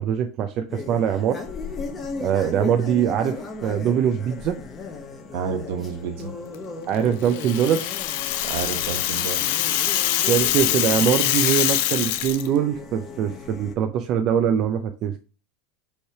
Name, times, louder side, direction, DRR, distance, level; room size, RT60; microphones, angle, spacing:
voice 1, 0.0-1.4 2.2-4.6 6.9-8.0 10.3-15.2, right 9 dB, 40° right, 6 dB, 0.5 m, -23 dB
sound 1, 0.7-13.7, left 4 dB, 20° left, 0.9 m, -37 dB
voice 2, 5.3-6.3 8.4-9.7, right 6 dB, 70° right, 5 dB, 1.5 m, -30 dB
Rattle (instrument), 7.2-12.5, left 13 dB, 65° left, 0.6 m, -24 dB
5.4 x 3.3 x 5.7 m, 0.36 s
supercardioid pair, 150°, 0 cm